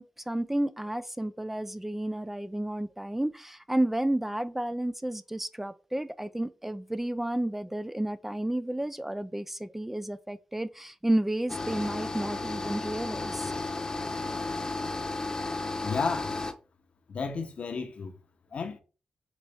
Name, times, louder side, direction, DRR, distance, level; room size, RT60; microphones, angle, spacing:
voice 1, 0.0-13.5, right 1 dB, 10° right, 0.3 m, -31 dB
sound 1, 11.5-16.5, left 3 dB, 30° left, 0.8 m, -33 dB
voice 2, 15.8-16.4 17.1-18.2 18.5-18.8, left 5 dB, 65° left, 0.8 m, -33 dB
4.1 x 3.3 x 3.4 m
cardioid pair, 50°, 2 cm